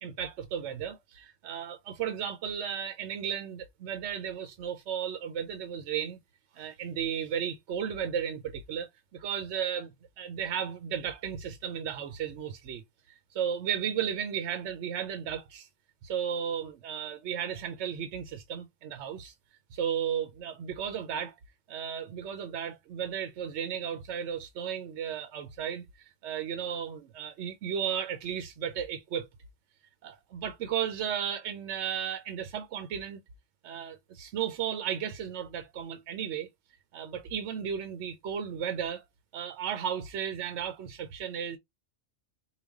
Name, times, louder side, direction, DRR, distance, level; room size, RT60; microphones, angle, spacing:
voice 1, 0.0-6.2 6.5-9.9 10.2-12.8 13.3-15.7 16.0-19.3 19.7-21.4 21.7-29.3 30.0-33.2 33.6-36.5 36.9-39.1 39.3-41.6, right 8 dB, 75° right, 0.9 m, -34 dB
4.9 x 2.3 x 3.4 m
omnidirectional pair, 1.2 m